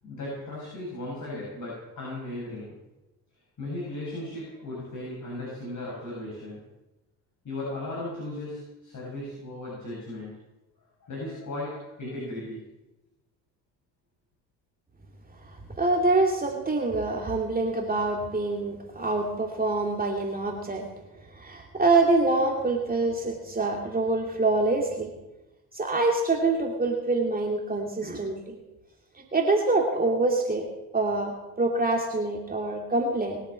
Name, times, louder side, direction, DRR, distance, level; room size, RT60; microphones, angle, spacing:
voice 1, 0.0-2.8 3.6-6.6 7.4-10.4 11.0-12.6, left 1 dB, 35° left, -5 dB, 8.0 m, -36 dB
voice 2, 15.8-20.8 21.4-25.1 25.7-28.6 29.2-30.7 30.9-33.4, right 2 dB, 15° right, 0 dB, 2.7 m, -25 dB
22.0 x 8.2 x 7.6 m, 1.0 s
figure-of-eight pair, 55°, 49 cm